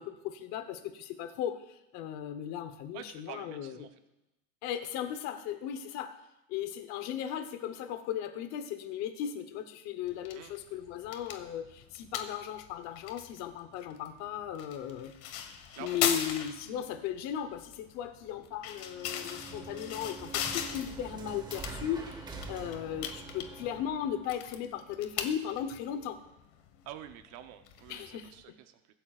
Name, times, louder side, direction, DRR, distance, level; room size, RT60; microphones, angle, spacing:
voice 1, 0.0-3.9 4.6-6.2 6.5-15.1 15.8-26.2 27.9-28.3, left 9 dB, 60° left, 8 dB, 1.0 m, -37 dB
voice 2, 2.9-3.9 10.3-10.5 15.7-16.4 26.8-28.9, right 12 dB, 60° right, 7 dB, 0.9 m, -48 dB
sound 1, 10.0-28.4, left 9 dB, 85° left, 1.5 m, -40 dB
sound 2, 18.7-24.3, right 3 dB, 15° right, 1.1 m, -45 dB
23.0 x 9.0 x 2.5 m, 0.95 s
cardioid pair, 175°, 32 cm